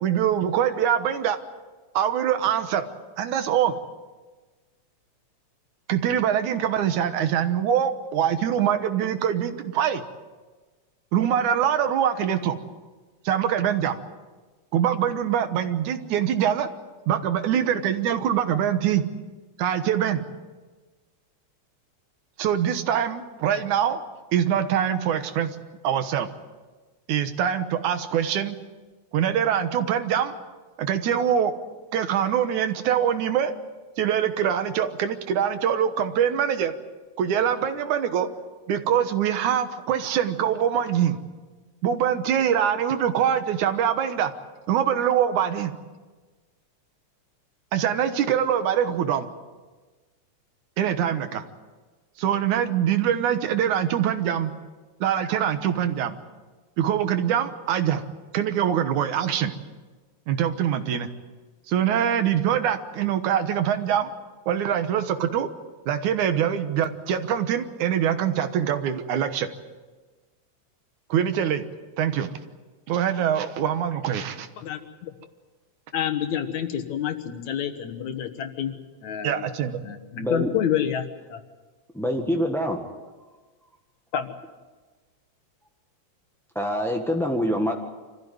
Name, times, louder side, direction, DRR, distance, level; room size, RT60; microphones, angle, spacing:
voice 1, 0.0-1.4 1.9-2.9 3.2-3.8 5.9-10.0 11.1-12.6 13.3-14.0 14.7-16.7 17.1-19.0 19.6-20.2 22.4-24.0 24.3-25.6 25.8-26.3 27.1-28.6 29.1-30.3 30.8-31.5 31.9-33.5 34.0-36.7 37.2-38.3 38.7-41.2 41.8-44.3 44.7-45.7 47.7-49.3 50.8-51.4 52.2-54.5 55.0-56.2 56.8-58.0 58.3-59.5 60.3-61.1 61.7-64.1 64.5-65.5 65.9-69.5 71.1-71.6 72.0-72.3 72.9-74.5 79.2-79.9, right 9 dB, 80° right, 9 dB, 2.6 m, -24 dB
voice 2, 74.6-75.1 75.9-78.7 79.0-79.5 79.8-81.4 82.1-82.5 84.1-84.3, left 9 dB, 70° left, 7 dB, 2.7 m, -29 dB
voice 3, 80.2-80.5 81.9-82.8 86.5-87.7, equal, 5° left, 1 dB, 0.4 m, -25 dB
26.0 x 15.0 x 9.5 m, 1.3 s
omnidirectional pair, 3.4 m